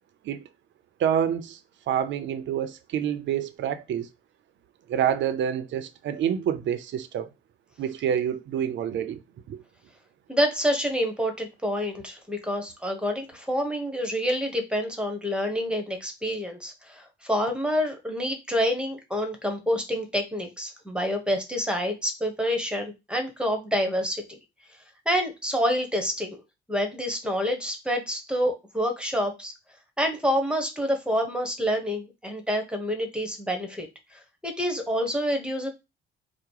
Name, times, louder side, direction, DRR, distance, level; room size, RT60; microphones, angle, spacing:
voice 1, 1.0-1.6 1.9-4.1 4.9-7.3 7.8-9.2 9.5-9.6, right 9 dB, 70° right, 0.6 m, -27 dB
voice 2, 10.3-24.4 25.0-26.4 26.7-29.5 30.0-35.7, equal, 5° right, 1.2 m, -27 dB
4.9 x 2.2 x 4.6 m
cardioid pair, 90°, 20 cm